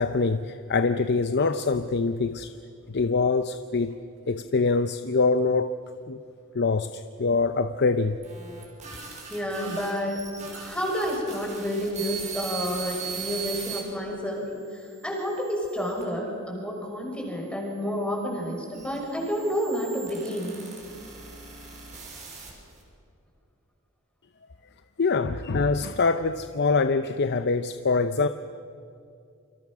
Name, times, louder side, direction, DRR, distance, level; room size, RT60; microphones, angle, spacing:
voice 1, 0.0-2.5 2.9-4.0 4.3-5.7 6.1-6.2 6.5-8.2 25.0-28.3, left 4 dB, 50° left, 10 dB, 0.7 m, -24 dB
sound 1, 8.1-13.8 14.5-16.0 16.8-22.8, right 6 dB, 35° right, 6.3 m, -40 dB
voice 2, 8.8-10.2 10.5-20.5, equal, 5° left, -1 dB, 5.7 m, -30 dB
29.0 x 26.0 x 6.3 m, 2.4 s
head